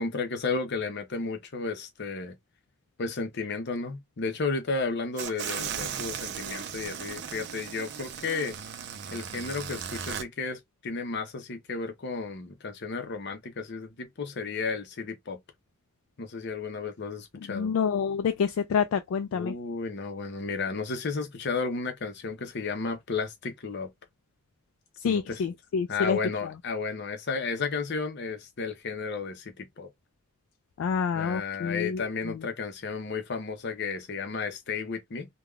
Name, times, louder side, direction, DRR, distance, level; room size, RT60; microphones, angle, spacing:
voice 1, 0.0-2.4 3.0-8.6 9.1-15.4 16.2-17.7 19.3-23.9 25.0-25.4 25.9-29.9 31.1-35.3, left 4 dB, 55° left, 0.7 m, -33 dB
sound 1, 5.2-10.2, right 8 dB, 55° right, 0.4 m, -36 dB
voice 2, 17.5-19.5 25.0-26.2 30.8-32.5, left 6 dB, 75° left, 0.3 m, -28 dB
3.4 x 2.2 x 2.3 m
head